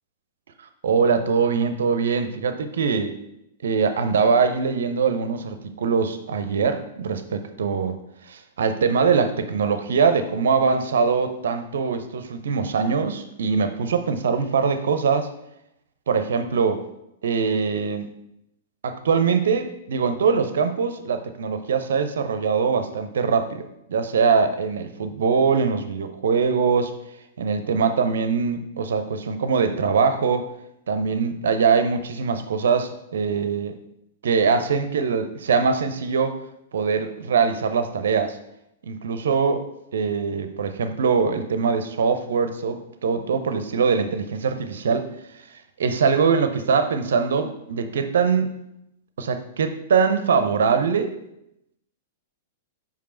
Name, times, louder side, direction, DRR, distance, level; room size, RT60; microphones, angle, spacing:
voice 1, 0.8-3.2 3.6-8.0 8.3-15.3 16.1-16.8 17.2-18.1 18.8-23.6 23.9-26.9 27.4-30.5 30.9-33.7 34.2-36.4 36.7-38.4 38.8-39.7 39.9-45.1 45.8-48.6 49.2-51.2, right 5 dB, 65° right, 9 dB, 0.6 m, -22 dB
5.4 x 5.2 x 4.4 m, 0.81 s
figure-of-eight pair, 100°, 0 cm